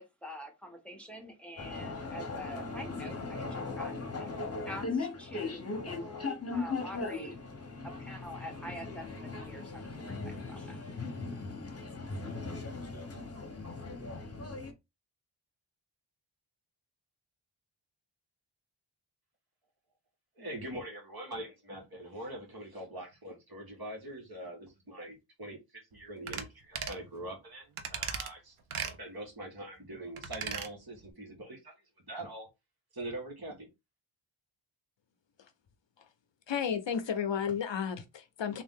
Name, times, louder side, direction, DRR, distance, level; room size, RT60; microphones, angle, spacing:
voice 1, 0.0-4.3 4.7-7.4 7.8-9.1 9.4-10.8, equal, ahead, 0.9 m, -46 dB
sound 1, 1.6-14.7, left 3 dB, 30° left, 0.9 m, -38 dB
voice 2, 20.4-28.6 28.8-32.5 32.9-33.7, right 1 dB, 45° right, 1.4 m, -43 dB
sound 2, 26.3-26.5 26.8-27.0 27.8-28.3 28.7-29.0 30.2-30.7 31.0-31.1, right 7 dB, 80° right, 0.7 m, -37 dB
voice 3, 36.5-38.6, left 7 dB, 65° left, 0.6 m, -33 dB
3.5 x 2.4 x 3.6 m
wide cardioid pair, 110°, 49 cm